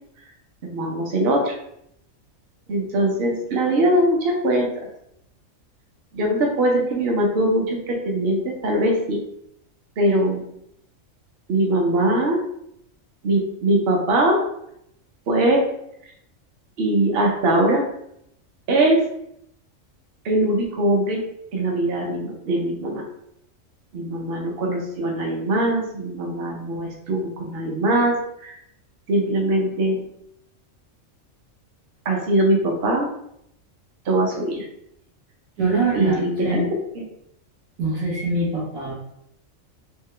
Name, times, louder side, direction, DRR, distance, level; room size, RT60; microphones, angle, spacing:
voice 1, 0.7-1.5 2.7-4.9 6.1-9.2 10.0-10.4 11.5-12.4 13.2-14.4 15.3-15.7 16.8-17.8 18.7-19.0 20.2-21.2 21.5-23.0 23.9-28.6 29.1-30.0 32.1-33.1 34.1-34.7 35.9-36.6 37.0-37.1, right 1 dB, 55° right, 0 dB, 0.8 m, -21 dB
voice 2, 35.6-36.2 36.4-36.7 37.8-38.9, right 3 dB, 85° right, -5 dB, 1.6 m, -23 dB
3.6 x 2.1 x 3.2 m, 0.75 s
omnidirectional pair, 1.4 m